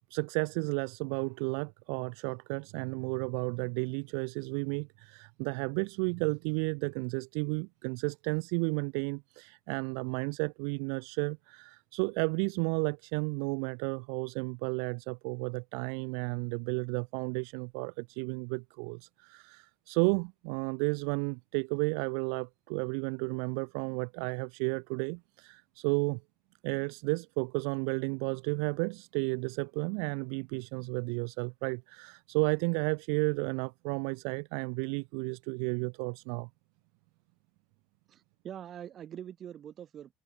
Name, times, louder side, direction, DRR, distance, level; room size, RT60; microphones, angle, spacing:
voice 1, 0.1-26.2 26.6-36.5, right 40 dB or more, 70° right, 1.1 m, -33 dB
voice 2, 38.1-40.2, right 10 dB, 50° right, 2.6 m, -44 dB
hypercardioid pair, 55°, 0 cm